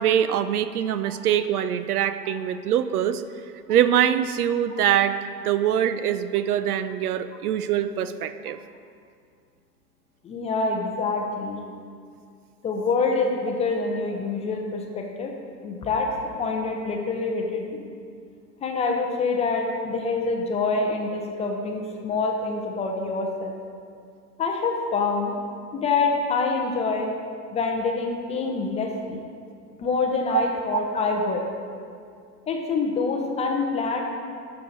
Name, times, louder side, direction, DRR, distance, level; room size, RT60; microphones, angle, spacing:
voice 1, 0.0-3.2 3.7-5.2 5.4-8.6 30.3-30.4 30.7-30.8, right 10 dB, 65° right, 12 dB, 0.6 m, -23 dB
voice 2, 10.2-11.6 12.6-15.3 15.6-16.1 16.4-17.8 18.6-23.5 24.4-25.3 25.7-27.1 27.5-29.2 29.8-31.4 32.5-34.0, left 4 dB, 15° left, 1 dB, 0.6 m, -26 dB
11.5 x 6.7 x 4.0 m, 2.3 s
hypercardioid pair, 115°, 49 cm